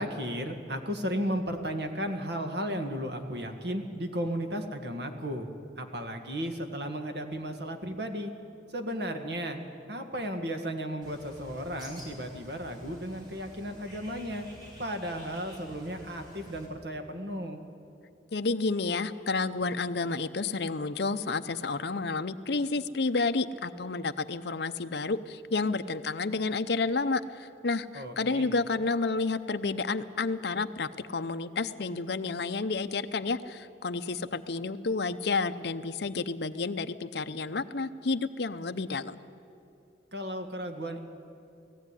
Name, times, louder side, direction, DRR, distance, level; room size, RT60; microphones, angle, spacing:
voice 1, 0.0-5.5 5.8-8.3 8.7-9.6 9.9-14.5 14.8-17.6 27.9-28.5 40.1-41.0, equal, 60° right, 5 dB, 1.8 m, -34 dB
Bird, 11.0-16.7, left 1 dB, 25° right, 4.9 m, -50 dB
voice 2, 18.3-39.2, left 3 dB, 65° left, 9 dB, 0.7 m, -30 dB
19.0 x 15.0 x 9.8 m, 2.6 s
head